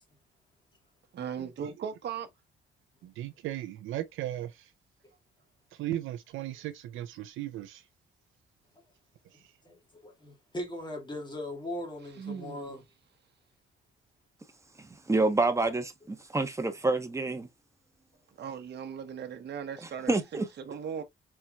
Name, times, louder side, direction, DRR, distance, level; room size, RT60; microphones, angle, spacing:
voice 1, 1.1-2.3 12.2-12.8 18.4-21.0, right 7 dB, 60° right, 1.1 m, -38 dB
voice 2, 3.0-4.7 5.7-7.9 9.3-9.5, right 13 dB, 85° right, 0.6 m, -37 dB
voice 3, 9.6-12.8, left 1 dB, 25° left, 2.3 m, -39 dB
voice 4, 14.8-17.5 20.1-20.4, right 2 dB, 15° right, 1.1 m, -28 dB
4.4 x 4.4 x 2.4 m
cardioid pair, 90°, 20 cm